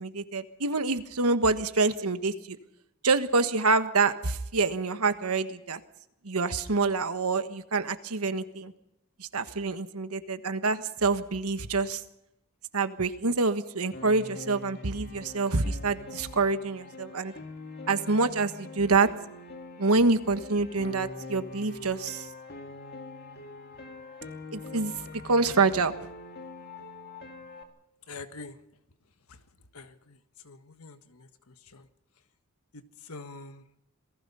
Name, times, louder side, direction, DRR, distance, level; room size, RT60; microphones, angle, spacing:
voice 1, 0.0-2.6 3.0-5.8 6.2-8.7 9.2-12.0 12.7-17.3 17.9-19.1 19.8-22.3 24.5-25.9, right 3 dB, 85° right, 10 dB, 1.4 m, -26 dB
Piano, 13.9-27.6, left 3 dB, 45° left, 2.5 m, -44 dB
voice 2, 28.1-28.6 29.3-29.4 29.7-30.2 30.4-31.9 32.7-33.6, left 3 dB, 85° left, 9 dB, 1.5 m, -45 dB
27.5 x 19.0 x 5.6 m, 0.85 s
head